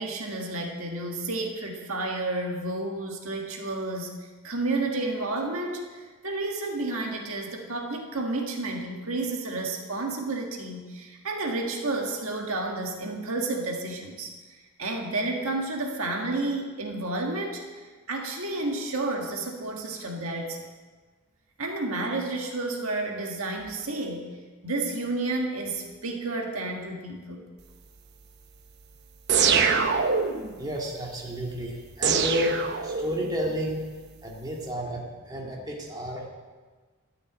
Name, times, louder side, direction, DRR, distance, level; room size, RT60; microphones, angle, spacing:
voice 1, 0.0-4.1 4.4-20.7 21.6-24.3 24.6-27.5, right 2 dB, 70° right, 1 dB, 1.7 m, -31 dB
sound 1, 29.3-30.5 32.0-33.3, right 6 dB, 50° right, 0.8 m, -23 dB
voice 2, 30.6-33.8 34.2-36.3, equal, 20° right, -2 dB, 2.0 m, -31 dB
12.5 x 7.0 x 8.8 m, 1.4 s
head